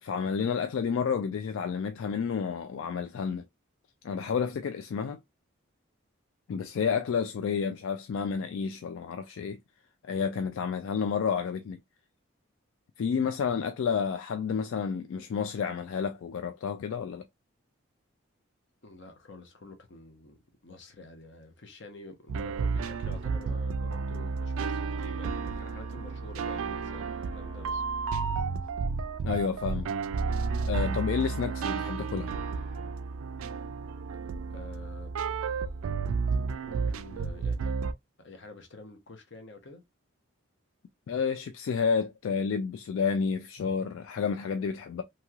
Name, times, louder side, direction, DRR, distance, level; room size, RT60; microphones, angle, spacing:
voice 1, 0.0-3.4 4.0-5.2 6.5-9.6 10.1-11.8 13.0-17.2 29.2-29.9 30.7-32.3 41.1-45.0, left 6 dB, 70° left, 0.3 m, -30 dB
voice 2, 18.8-28.3 34.5-35.1 36.6-37.8 38.2-39.8, left 2 dB, 55° left, 0.7 m, -49 dB
sound 1, 22.3-37.9, right 5 dB, 85° right, 0.3 m, -32 dB
Wind instrument woodwind instrument, 25.9-33.2, equal, ahead, 1.1 m, -53 dB
3.0 x 2.8 x 2.3 m
head